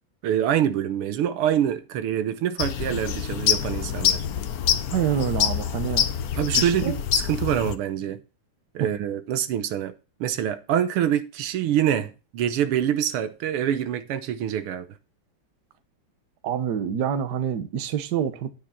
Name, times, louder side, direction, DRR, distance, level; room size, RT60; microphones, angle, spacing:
voice 1, 0.2-4.2 6.4-8.2 8.7-9.9 10.2-14.9, right 10 dB, 80° right, 1.8 m, -25 dB
sound 1, 2.6-7.7, left 9 dB, 60° left, 1.0 m, -25 dB
voice 2, 4.9-6.1 6.5-7.0 8.8-8.9 16.4-18.5, right 9 dB, 55° right, 1.5 m, -26 dB
9.7 x 6.3 x 5.7 m
omnidirectional pair, 2.4 m